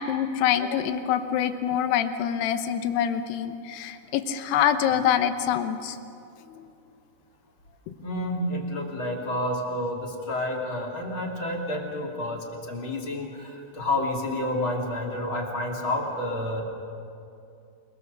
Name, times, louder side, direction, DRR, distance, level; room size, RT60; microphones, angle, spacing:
voice 1, 0.0-6.0 7.9-8.0, left 9 dB, 75° left, 8 dB, 2.6 m, -25 dB
voice 2, 6.4-6.7 8.0-16.6, left 1 dB, 35° left, -1 dB, 2.6 m, -30 dB
28.5 x 22.0 x 6.7 m, 2.6 s
omnidirectional pair, 5.8 m